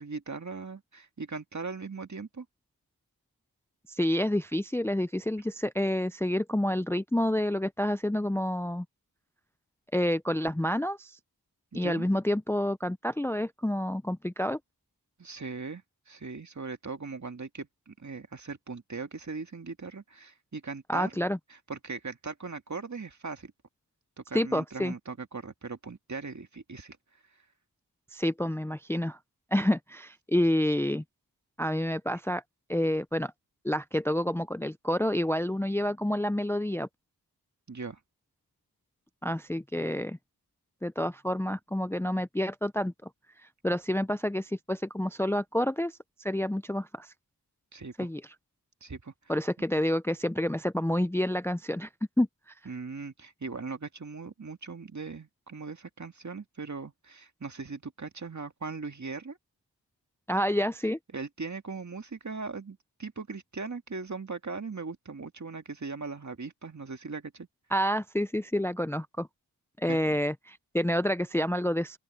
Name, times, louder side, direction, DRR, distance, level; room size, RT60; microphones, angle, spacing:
voice 1, 0.0-2.5 11.7-12.1 15.2-21.1 21.5-23.5 24.2-27.0 37.7-38.0 47.7-48.1 48.8-49.1 52.7-59.4 61.1-67.5 69.9-70.1, right 4 dB, 45° right, 2.0 m, -39 dB
voice 2, 3.9-8.8 9.9-11.2 11.7-14.6 20.9-21.4 24.3-24.9 28.1-29.2 29.5-31.0 31.6-32.4 32.7-33.3 33.6-36.9 39.2-40.2 40.8-42.9 43.6-45.9 46.2-47.1 48.0-48.2 49.3-51.9 52.2-52.3 60.3-61.0 67.7-69.3 69.8-72.0, left 1 dB, 5° left, 0.6 m, -28 dB
open air
cardioid pair, 45°, 39 cm